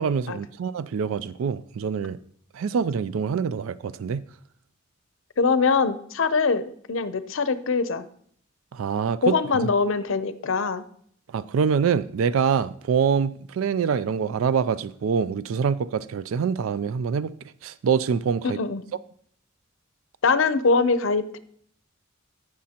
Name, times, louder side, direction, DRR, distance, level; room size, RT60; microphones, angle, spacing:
voice 1, 0.0-2.2 2.5-4.2 8.7-9.4 11.3-17.3 17.6-18.6, right 6 dB, 80° right, 0.4 m, -25 dB
voice 2, 5.4-8.1 9.2-10.8 18.4-18.8 20.2-21.4, left 4 dB, 70° left, 0.6 m, -23 dB
16.0 x 6.2 x 2.9 m
head